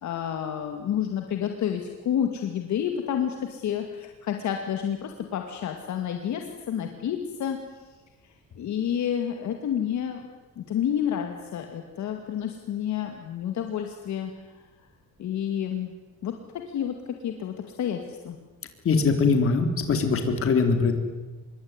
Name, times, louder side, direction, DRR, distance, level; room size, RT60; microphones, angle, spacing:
voice 1, 0.0-7.6 8.6-10.3 10.6-14.3 15.2-15.9 16.2-16.3 16.7-18.4, left 9 dB, 60° left, 4 dB, 2.4 m, -29 dB
voice 2, 18.9-21.0, left 4 dB, 40° left, 6 dB, 3.8 m, -22 dB
26.0 x 22.5 x 9.8 m, 1.2 s
cardioid pair, 170°, 32 cm